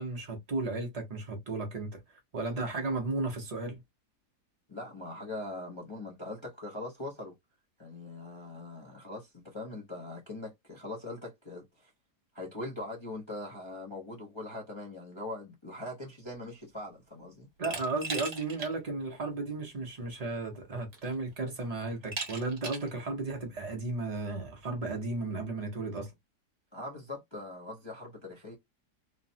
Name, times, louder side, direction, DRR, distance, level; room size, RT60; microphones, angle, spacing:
voice 1, 0.0-2.0 2.3-3.8 17.6-26.1, right 3 dB, 80° right, 0.3 m, -34 dB
voice 2, 4.7-7.3 7.8-11.9 12.3-17.5 26.7-28.6, left 2 dB, 45° left, 0.3 m, -41 dB
Glass, 17.6-18.7 19.1-19.2 20.4-20.5 20.9-21.3 22.1-22.9, right 3 dB, 40° right, 1.0 m, -38 dB
3.1 x 2.0 x 2.6 m
omnidirectional pair, 1.8 m